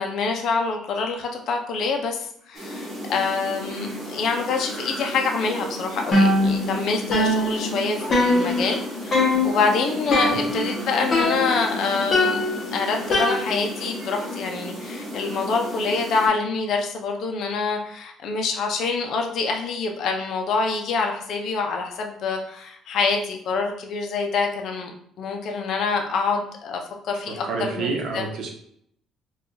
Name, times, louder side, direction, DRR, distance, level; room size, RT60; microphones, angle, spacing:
voice 1, 0.0-12.4 12.7-24.9 25.2-28.2, left 4 dB, 60° left, 2 dB, 0.5 m, -26 dB
sound 1, 2.5-16.3, equal, 35° right, 1.0 m, -33 dB
sound 2, 6.1-6.8 7.1-8.8 9.1-9.7 10.1-10.8 11.1-11.7 12.1-13.8, left 2 dB, 35° left, 0.9 m, -22 dB
voice 2, 27.5-28.5, right 4 dB, 65° right, 1 dB, 0.8 m, -28 dB
4.4 x 2.4 x 2.6 m, 0.67 s
cardioid pair, 135°, 0 cm